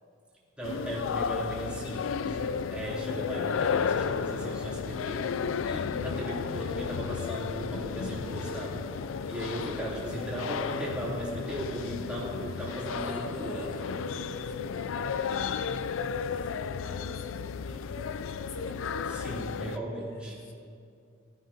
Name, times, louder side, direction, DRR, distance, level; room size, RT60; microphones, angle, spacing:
sound 1, 0.6-19.8, left 6 dB, 90° left, 0.4 m, -33 dB
voice 1, 0.6-5.4 5.7-8.8 9.3-13.6 19.1-20.4, right 1 dB, 5° right, -8 dB, 3.1 m, -37 dB
voice 2, 9.6-10.2 12.9-13.8 14.2-14.8 15.1-15.6 16.3-19.3 20.4-20.5, left 1 dB, 70° left, 2 dB, 1.3 m, -45 dB
17.5 x 13.5 x 2.8 m, 2.3 s
head